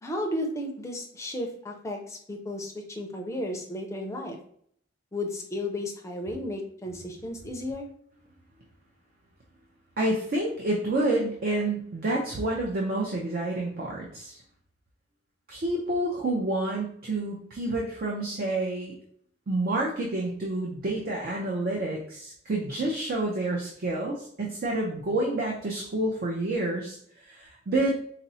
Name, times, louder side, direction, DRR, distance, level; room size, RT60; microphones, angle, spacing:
voice 1, 0.0-4.4 5.1-7.9, left 1 dB, 15° left, 2 dB, 0.5 m, -34 dB
voice 2, 10.0-14.4 15.5-19.0 19.5-27.0 27.3-27.9, right 2 dB, 55° right, -2 dB, 0.5 m, -28 dB
4.1 x 2.0 x 2.6 m, 0.64 s
head